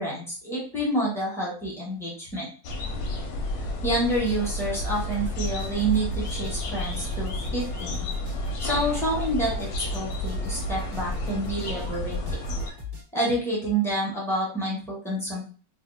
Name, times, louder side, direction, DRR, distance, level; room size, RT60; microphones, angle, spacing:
voice 1, 0.0-2.5 3.8-8.0 8.6-12.4 13.1-15.4, right 1 dB, 5° left, -6 dB, 0.5 m, -28 dB
sound 1, 2.6-12.7, left 1 dB, 70° left, 0.9 m, -31 dB
sound 2, 4.1-13.0, left 5 dB, 50° right, 1.4 m, -41 dB
3.3 x 2.0 x 2.5 m, 0.39 s
omnidirectional pair, 1.9 m